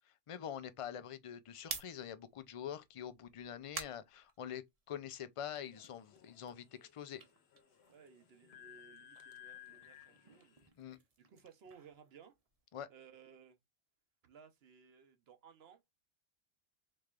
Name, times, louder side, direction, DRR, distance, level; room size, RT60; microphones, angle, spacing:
voice 1, 0.3-7.2 10.8-11.0 12.7-12.9, left 9 dB, 55° left, 0.3 m, -45 dB
sound 1, 1.6-5.0 5.4-8.4 8.6-12.8, right 4 dB, 40° right, 0.8 m, -51 dB
sound 2, 5.6-10.7, left 11 dB, 75° left, 1.0 m, -58 dB
voice 2, 7.9-10.6 10.9-12.4 12.9-13.6 14.2-15.8, right 7 dB, 70° right, 1.0 m, -60 dB
4.3 x 3.3 x 2.4 m
omnidirectional pair, 1.1 m